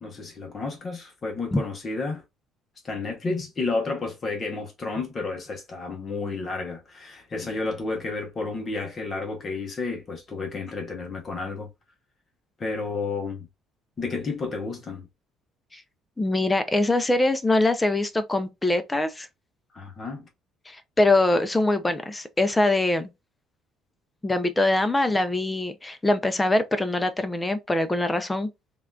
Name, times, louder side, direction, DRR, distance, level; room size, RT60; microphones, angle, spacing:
voice 1, 0.0-2.2 2.8-11.7 12.6-13.5 14.0-15.1 19.7-20.3, left 3 dB, 30° left, 0.7 m, -31 dB
voice 2, 16.2-19.3 20.7-23.1 24.2-28.5, left 2 dB, 10° left, 0.3 m, -23 dB
3.5 x 2.2 x 2.2 m
cardioid pair, 155°, 0 cm